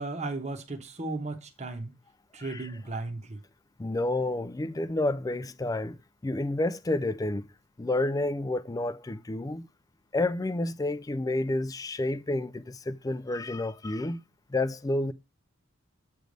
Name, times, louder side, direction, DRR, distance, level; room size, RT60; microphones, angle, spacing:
voice 1, 0.0-1.9 2.3-3.4, right 2 dB, 35° right, 1.1 m, -35 dB
voice 2, 3.8-6.0 6.2-7.5 7.8-9.7 10.1-14.2 14.5-15.1, left 2 dB, 15° left, 0.4 m, -30 dB
7.8 x 3.3 x 5.1 m
head